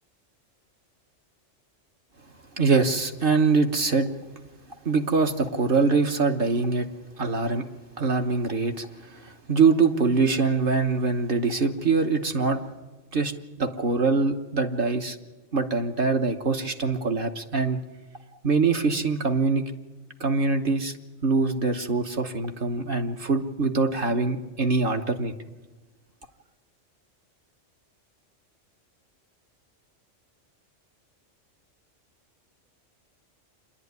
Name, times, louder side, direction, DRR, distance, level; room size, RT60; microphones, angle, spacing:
voice 1, 2.6-4.1 4.8-6.9 7.2-7.7 8.0-12.6 13.1-15.2 15.5-17.8 18.4-19.6 20.2-20.9 21.2-25.3, right 4 dB, 50° right, 4 dB, 1.3 m, -24 dB
26.5 x 11.0 x 9.5 m, 1.2 s
omnidirectional pair, 1.3 m